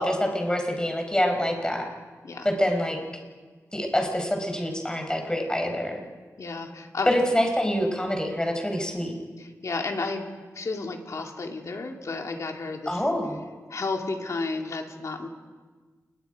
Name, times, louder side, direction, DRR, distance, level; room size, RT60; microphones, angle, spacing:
voice 1, 0.0-1.9 2.4-3.0 3.7-6.0 7.1-9.1 12.9-13.4, equal, 15° left, 3 dB, 4.6 m, -26 dB
voice 2, 6.4-7.1 9.4-10.3 10.5-13.0 13.7-15.3, left 3 dB, 65° left, 2 dB, 2.7 m, -32 dB
29.0 x 21.0 x 5.1 m, 1.4 s
wide cardioid pair, 80°, 6 cm